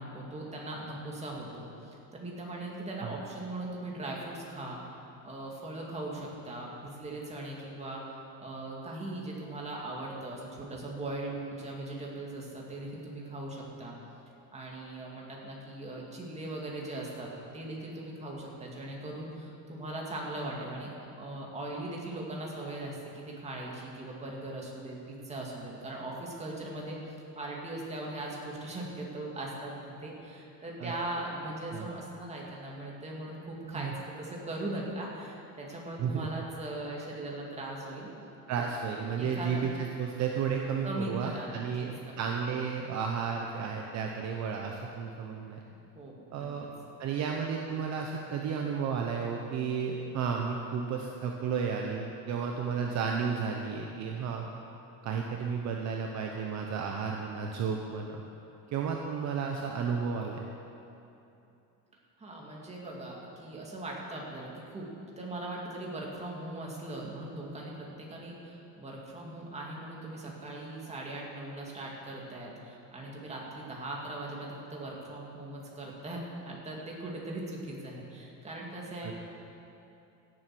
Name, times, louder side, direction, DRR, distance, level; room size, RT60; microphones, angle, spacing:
voice 1, 0.0-8.0 8.4-13.9 14.5-17.3 17.5-20.9 21.2-27.0 27.4-29.7 30.0-38.1 38.6-38.7 39.1-39.6 40.8-42.4 45.7-46.5 62.2-64.9 65.2-79.2, right 1 dB, 20° right, -3 dB, 2.5 m, -39 dB
voice 2, 38.5-45.6 46.3-46.7 47.0-54.5 55.0-58.2 58.7-60.4 79.0-79.1, right 6 dB, 50° right, 1 dB, 1.0 m, -33 dB
16.5 x 7.8 x 6.1 m, 2.8 s
cardioid pair, 140°, 35 cm